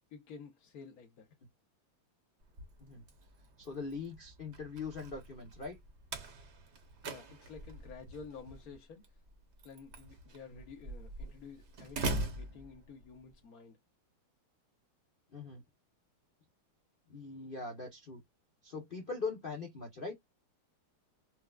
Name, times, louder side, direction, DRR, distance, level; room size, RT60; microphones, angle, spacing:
voice 1, 0.1-1.3 7.0-9.2 9.6-13.8, left 5 dB, 60° left, 1.0 m, -51 dB
Slam, 2.4-13.3, right 2 dB, 45° right, 0.9 m, -43 dB
voice 2, 3.6-5.8 10.5-10.6 15.3-15.6 17.1-18.2 18.6-20.2, left 4 dB, 90° left, 0.4 m, -41 dB
4.4 x 2.2 x 2.3 m
omnidirectional pair, 2.3 m